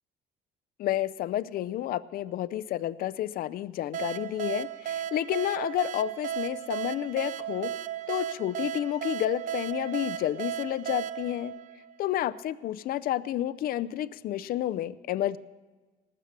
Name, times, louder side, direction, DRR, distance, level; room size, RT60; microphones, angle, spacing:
voice 1, 0.8-7.7 8.1-11.5 12.0-15.4, left 13 dB, 60° left, 17 dB, 0.5 m, -30 dB
sound 1, 3.9-12.4, right 10 dB, 50° right, 0.4 m, -35 dB
19.0 x 7.4 x 6.7 m, 1.3 s
cardioid pair, 110°, 17 cm